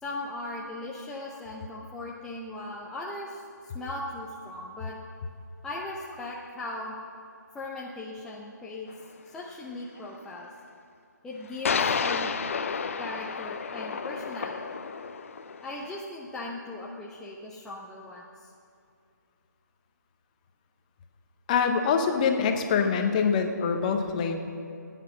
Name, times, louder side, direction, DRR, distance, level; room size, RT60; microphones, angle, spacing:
voice 1, 0.0-4.9 5.6-6.9 7.5-8.9 9.3-10.5 11.2-12.3 13.0-14.6 15.6-18.5, left 2 dB, 5° left, -4 dB, 0.6 m, -38 dB
sound 1, 8.9-9.0 11.6-16.0, left 5 dB, 45° left, 0.6 m, -31 dB
voice 2, 21.5-24.4, left 6 dB, 25° left, 6 dB, 0.9 m, -24 dB
16.0 x 9.3 x 5.9 m, 2.4 s
figure-of-eight pair, 145°, 10 cm